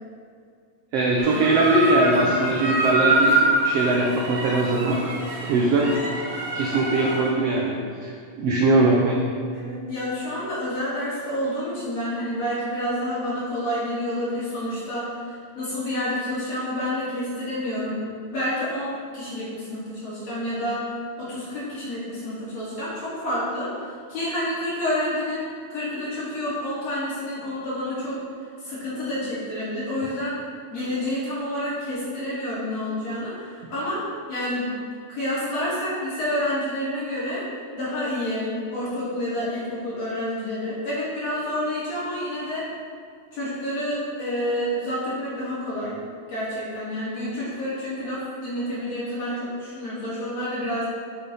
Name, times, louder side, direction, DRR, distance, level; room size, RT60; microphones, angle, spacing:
voice 1, 0.9-5.1 5.5-6.0 6.5-9.3, right 2 dB, 80° right, -1 dB, 1.4 m, -21 dB
sound 1, 1.2-7.3, right 2 dB, 55° right, 3.2 m, -25 dB
voice 2, 9.5-18.0 18.3-20.8 21.2-23.7 24.1-28.2 28.6-30.3 30.7-34.0 34.3-34.7 35.1-37.4 37.7-42.6 43.3-46.0 46.3-50.9, left 1 dB, 55° left, -10 dB, 3.5 m, -29 dB
8.4 x 6.6 x 4.1 m, 2.2 s
omnidirectional pair, 3.7 m